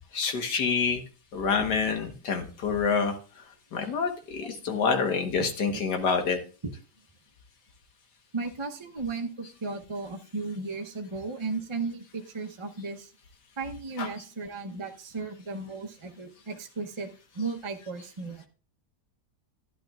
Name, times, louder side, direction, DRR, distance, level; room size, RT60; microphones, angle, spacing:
voice 1, 0.1-1.0 1.3-3.1 3.7-6.4 14.0-14.1, left 5 dB, 80° left, 5 dB, 1.9 m, -27 dB
voice 2, 5.4-5.8 6.6-6.7 8.3-13.1 13.6-17.1 17.3-18.5, right 4 dB, 30° right, 3 dB, 0.6 m, -35 dB
11.5 x 11.0 x 2.4 m, 0.36 s
omnidirectional pair, 1.8 m